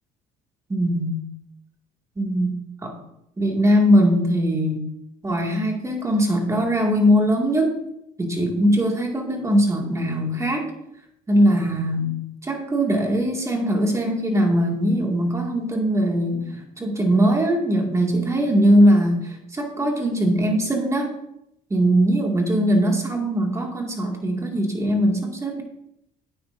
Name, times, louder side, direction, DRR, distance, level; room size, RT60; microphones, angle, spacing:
voice 1, 0.7-1.2 2.2-3.0 3.4-4.8 5.2-7.7 8.2-10.7 11.3-12.1 12.4-21.1 21.7-25.6, equal, 15° right, 1 dB, 2.2 m, -21 dB
12.5 x 9.1 x 2.7 m, 0.80 s
cardioid pair, 110°, 17 cm